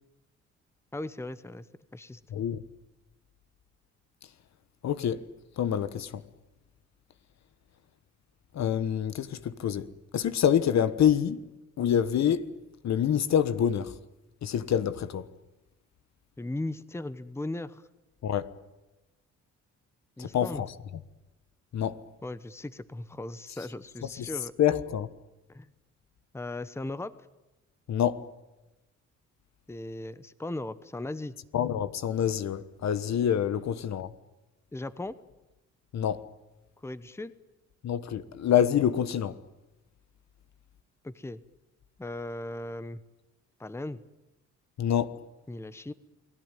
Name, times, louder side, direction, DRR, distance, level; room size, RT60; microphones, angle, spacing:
voice 1, 0.9-1.7 1.9-2.2 16.4-17.9 20.2-20.6 22.2-24.5 25.5-25.7 26.3-27.1 29.7-31.3 34.7-35.1 36.8-37.3 41.0-41.4 42.0-43.0 43.6-44.0 45.5-45.9, left 2 dB, 10° left, 1.0 m, -37 dB
voice 2, 4.8-5.2 5.6-6.2 8.5-9.9 10.1-11.4 11.8-12.4 12.8-13.9 14.4-15.2 18.2-18.5 20.2-20.7 21.7-22.0 24.2-24.3 24.6-25.1 27.9-28.2 31.5-34.1 35.9-36.2 37.8-39.3 44.8-45.1, left 9 dB, 65° left, 1.3 m, -26 dB
29.0 x 19.0 x 9.2 m
cardioid pair, 90°, 30 cm